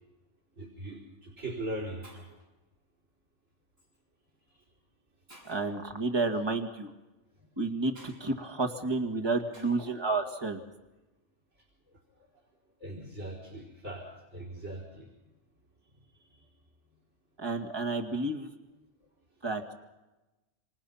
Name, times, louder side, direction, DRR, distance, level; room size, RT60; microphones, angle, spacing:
voice 1, 0.6-2.3 12.8-15.1 16.3-16.4, right 1 dB, 75° right, 0 dB, 5.0 m, -40 dB
Shatter, 0.8-1.0 1.7-1.8 2.0-2.5 3.8-4.0 4.6-4.7 5.3-5.8 7.9-8.2 9.5-9.9, right 1 dB, 60° right, 8.1 m, -55 dB
voice 2, 5.4-6.9 7.6-10.6 17.4-18.5 19.4-19.7, right 3 dB, 20° right, 3 dB, 2.1 m, -31 dB
27.5 x 27.5 x 5.8 m, 1.1 s
omnidirectional pair, 1.2 m